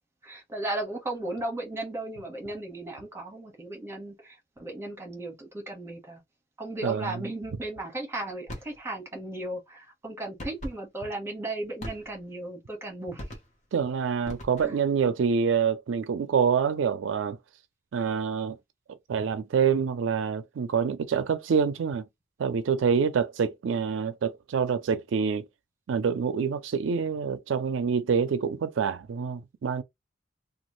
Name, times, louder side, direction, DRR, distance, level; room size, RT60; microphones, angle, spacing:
voice 1, 0.2-6.2 6.6-13.3 14.6-14.8, right 2 dB, 15° right, 1.0 m, -36 dB
voice 2, 6.8-7.2 13.7-17.4 17.9-18.6 19.1-22.0 22.4-25.4 25.9-29.8, right 6 dB, 80° right, 0.4 m, -26 dB
sound 1, 8.5-8.8 10.4-10.8 11.8-12.3 13.2-13.7 14.2-14.9, equal, 40° left, 1.0 m, -40 dB
3.0 x 2.3 x 3.0 m
head